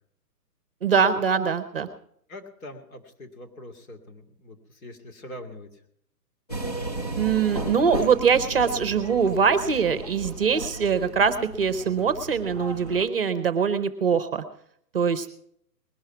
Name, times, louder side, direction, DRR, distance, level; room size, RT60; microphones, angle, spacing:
voice 1, 0.8-1.9 7.2-14.4 14.9-15.3, right 6 dB, 35° right, 11 dB, 0.8 m, -23 dB
voice 2, 2.3-5.8, left 1 dB, 55° left, 5 dB, 2.9 m, -43 dB
sound 1, 6.5-13.1, right 2 dB, 25° left, 0.5 m, -35 dB
20.0 x 12.0 x 4.6 m, 0.69 s
hypercardioid pair, 170°, 49 cm